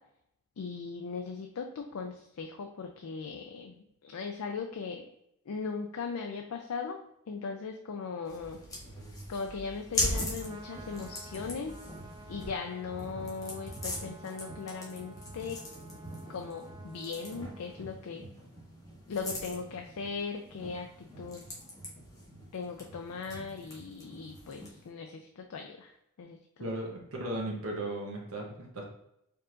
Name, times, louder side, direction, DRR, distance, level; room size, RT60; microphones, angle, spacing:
voice 1, 0.6-5.1 5.5-7.0 7.3-8.6 9.3-11.7 12.3-15.6 16.3-18.2 19.1-21.4 22.5-25.9 26.2-26.6, left 5 dB, 85° left, 4 dB, 0.4 m, -38 dB
sound 1, 8.2-24.9, left 1 dB, 15° left, 1.2 m, -41 dB
Trumpet, 10.4-17.8, right 2 dB, 20° right, 0.3 m, -53 dB
voice 2, 26.6-28.8, right 1 dB, 70° right, -1 dB, 1.0 m, -36 dB
4.6 x 3.7 x 2.5 m, 0.78 s
head